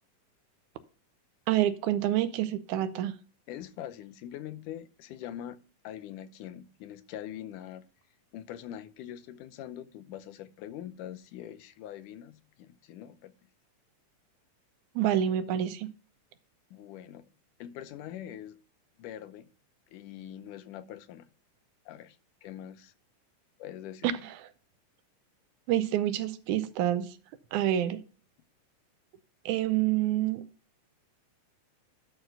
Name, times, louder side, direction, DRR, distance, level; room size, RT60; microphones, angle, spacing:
voice 1, 1.5-3.1 15.0-15.9 24.0-24.3 25.7-27.2 27.5-28.0 29.5-30.4, right 12 dB, 80° right, 2.0 m, -27 dB
voice 2, 3.5-7.8 8.3-13.3 16.7-17.3 17.6-18.6 19.0-19.5 19.9-21.3 21.9-22.9 23.6-24.1, left 11 dB, 90° left, 2.3 m, -43 dB
11.5 x 4.4 x 5.6 m
omnidirectional pair, 3.6 m